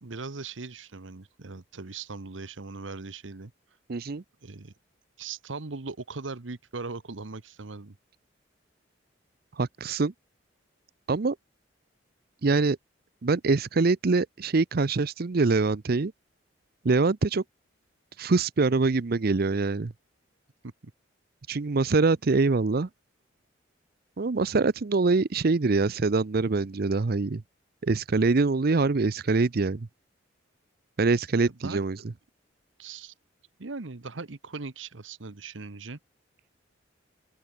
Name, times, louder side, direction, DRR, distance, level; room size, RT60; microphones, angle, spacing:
voice 1, 0.0-3.5 4.4-4.7 5.2-8.0 20.6-20.7 31.6-31.8 32.8-33.1 33.6-36.0, right 3 dB, 85° right, 1.1 m, -39 dB
voice 2, 3.9-4.2 9.5-10.1 11.1-11.4 12.4-12.8 13.2-16.1 16.8-17.4 18.2-19.9 21.5-22.9 24.2-27.4 27.8-29.9 31.0-32.0, right 3 dB, 55° right, 0.6 m, -24 dB
open air
head